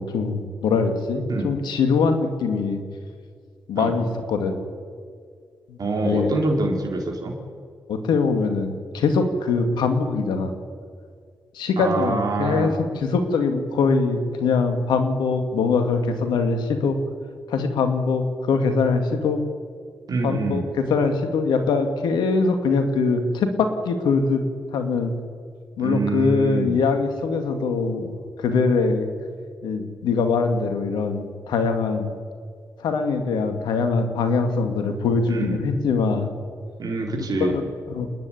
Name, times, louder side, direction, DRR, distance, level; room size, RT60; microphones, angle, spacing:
voice 1, 0.0-2.8 3.7-4.6 5.7-5.8 6.0-6.4 7.9-10.5 11.5-17.0 17.5-19.4 20.2-24.4 24.7-25.1 25.8-29.1 29.6-32.1 32.8-36.3 37.3-38.1, left 4 dB, 85° left, 7 dB, 2.2 m, -22 dB
voice 2, 5.8-7.4 11.8-12.7 20.1-20.6 25.8-26.8 35.3-35.7 36.8-37.6, right 3 dB, 60° right, 0 dB, 4.0 m, -25 dB
28.5 x 10.5 x 10.0 m, 2.1 s
supercardioid pair, 40°, 7 cm